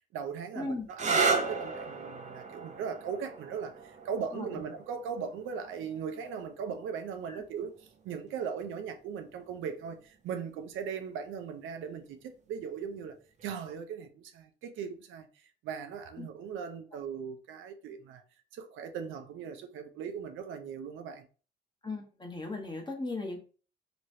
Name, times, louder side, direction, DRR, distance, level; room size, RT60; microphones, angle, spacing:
voice 1, 0.0-13.1 13.4-18.2 18.5-21.3, right 7 dB, 85° right, 0.6 m, -39 dB
voice 2, 0.5-0.9 4.3-4.6 7.3-7.4 16.2-16.3 21.8-23.4, left 2 dB, 20° left, 1.1 m, -37 dB
sound 1, 0.9-8.3 9.3-9.9 13.4-13.7, right 4 dB, 35° right, 0.6 m, -35 dB
3.0 x 3.0 x 2.7 m
cardioid pair, 90°, 20 cm